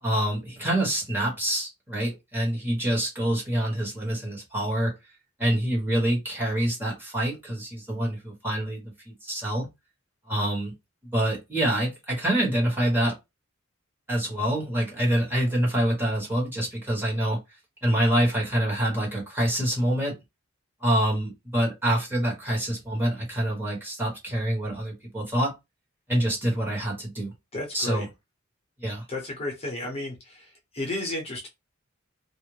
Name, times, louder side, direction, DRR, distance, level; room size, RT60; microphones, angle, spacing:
voice 1, 0.0-4.9 5.4-9.7 10.3-10.7 11.1-13.1 14.1-17.4 17.8-20.1 20.8-25.5 26.1-27.3 27.7-28.1 28.8-29.0, right 1 dB, 10° right, 1.1 m, -26 dB
voice 2, 27.5-28.1 29.1-31.5, left 1 dB, 30° left, 0.8 m, -33 dB
2.5 x 2.1 x 3.1 m
head